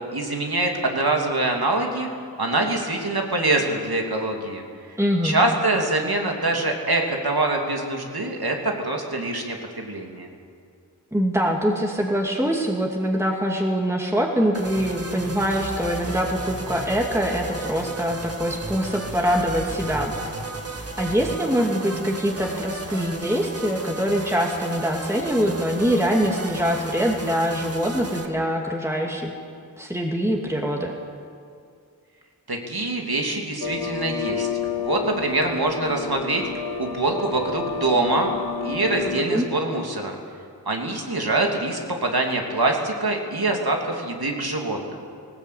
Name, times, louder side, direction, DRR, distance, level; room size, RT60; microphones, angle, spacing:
voice 1, 0.0-2.1 2.4-4.6 5.2-10.3 32.5-34.5 34.8-36.4 36.8-38.3 38.6-40.2 40.7-45.0, right 2 dB, 75° right, 1 dB, 2.9 m, -24 dB
voice 2, 5.0-5.4 11.1-20.1 21.0-29.3 29.8-30.9 39.0-39.5, equal, 5° right, -1 dB, 2.3 m, -24 dB
sound 1, 14.5-28.3, right 2 dB, 40° right, 1.8 m, -34 dB
sound 2, 33.6-39.3, left 5 dB, 70° left, 1.1 m, -30 dB
19.5 x 19.5 x 8.5 m, 2.2 s
wide cardioid pair, 55°, 38 cm